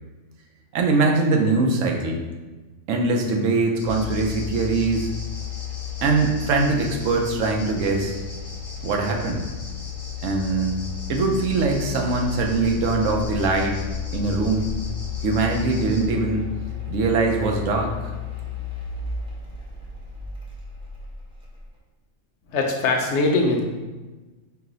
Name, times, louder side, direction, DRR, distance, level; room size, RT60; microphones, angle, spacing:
voice 1, 0.7-2.2 2.9-5.1 6.0-8.2 8.8-9.4 10.2-10.8 11.1-13.8 14.1-14.7 15.2-16.5 16.9-18.1, right 3 dB, 85° right, 2 dB, 1.0 m, -22 dB
sound 1, 3.8-16.1, left 2 dB, 35° left, 0.6 m, -42 dB
sound 2, 3.8-21.6, left 9 dB, 5° right, 0.4 m, -33 dB
voice 2, 22.5-23.6, left 3 dB, 70° left, 2 dB, 0.8 m, -21 dB
4.6 x 2.1 x 3.8 m, 1.2 s
omnidirectional pair, 1.3 m